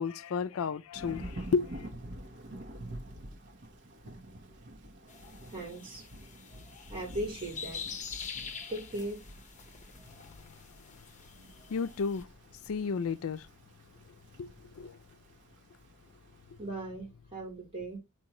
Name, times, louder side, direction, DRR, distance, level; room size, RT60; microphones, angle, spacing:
voice 1, 0.0-1.9 10.2-10.5 10.8-11.0 11.7-12.3 12.7-13.5 14.4-15.0, left 5 dB, 75° left, 0.4 m, -33 dB
Thunder / Rain, 0.9-16.5, right 1 dB, 55° right, 1.1 m, -48 dB
sound 1, 5.1-12.2, left 6 dB, 35° left, 0.8 m, -45 dB
voice 2, 5.5-6.0 6.9-7.8 8.7-9.2 16.6-18.0, right 1 dB, 25° right, 3.4 m, -38 dB
8.7 x 4.4 x 3.0 m
head